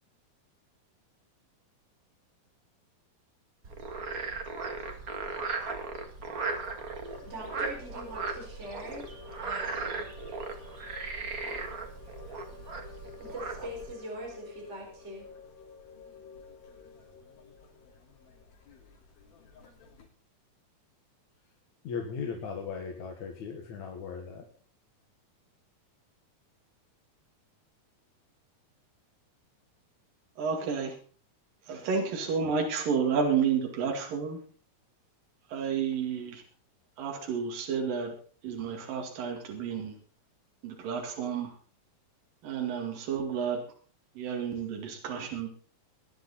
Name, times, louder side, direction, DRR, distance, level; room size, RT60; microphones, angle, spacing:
Frog, 3.6-13.9, right 4 dB, 40° right, 1.3 m, -37 dB
sound 1, 7.1-20.1, left 4 dB, 85° left, 4.8 m, -51 dB
voice 1, 7.2-10.1 13.2-15.2, right 1 dB, 20° right, -1 dB, 4.7 m, -42 dB
voice 2, 21.8-24.5, left 6 dB, 60° left, 2 dB, 2.8 m, -37 dB
voice 3, 30.4-31.0 31.7-34.4 35.5-36.4 37.0-38.2 38.4-40.0 40.6-41.5 42.4-43.6 44.2-45.5, right 6 dB, 70° right, 2 dB, 3.9 m, -31 dB
20.0 x 11.0 x 4.2 m, 0.41 s
omnidirectional pair, 4.1 m